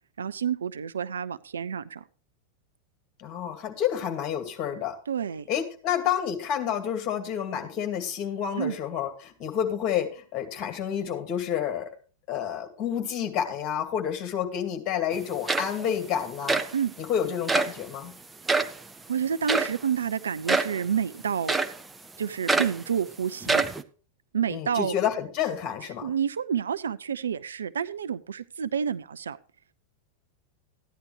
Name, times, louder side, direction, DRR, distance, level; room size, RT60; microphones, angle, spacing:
voice 1, 0.2-2.0 5.1-5.5 8.6-8.8 16.7-16.9 19.1-21.6 22.2-23.7 24.3-25.0 26.0-29.4, right 7 dB, 70° right, 13 dB, 0.4 m, -29 dB
voice 2, 3.2-4.9 5.5-11.9 12.3-16.6 17.0-18.1 24.5-26.1, left 9 dB, 35° left, 5 dB, 2.2 m, -29 dB
sound 1, 15.1-15.2 15.5-16.0 16.5-16.7 17.5-17.8 18.5-18.8 19.5-19.8 20.5-20.8 21.5-21.8 22.5-22.8 23.4-23.8, right 3 dB, 10° right, 0.7 m, -25 dB
14.0 x 10.5 x 3.3 m, 0.38 s
figure-of-eight pair, 90°, 0 cm